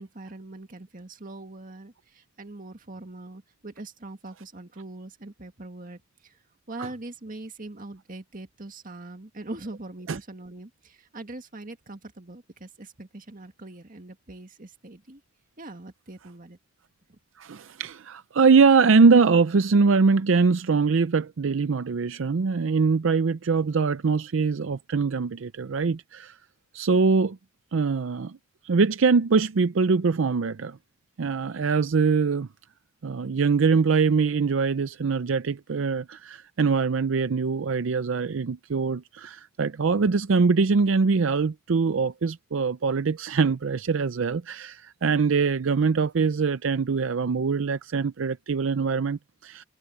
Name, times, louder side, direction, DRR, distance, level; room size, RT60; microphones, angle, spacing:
voice 1, 0.0-6.3 6.7-15.2 15.6-16.6 17.1-17.2, right 2 dB, 45° right, 2.0 m, -42 dB
voice 2, 17.4-26.4 26.7-27.4 27.7-28.4 28.6-30.8 31.2-32.5 33.0-49.6, right 4 dB, 75° right, 0.5 m, -23 dB
head